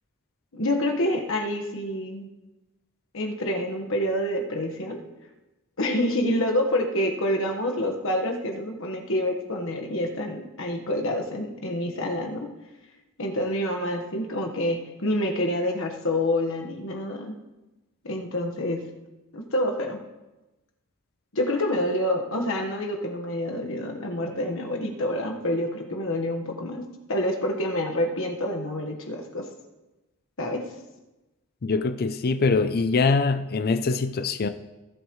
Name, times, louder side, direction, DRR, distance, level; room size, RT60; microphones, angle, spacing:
voice 1, 0.5-2.3 3.1-5.0 5.8-12.5 13.2-17.4 18.0-18.8 19.3-20.0 21.3-29.5 30.4-30.6, left 1 dB, 65° left, 2 dB, 1.4 m, -27 dB
voice 2, 31.6-34.5, left 4 dB, 45° left, 9 dB, 0.5 m, -23 dB
18.0 x 7.9 x 3.2 m, 1.1 s
head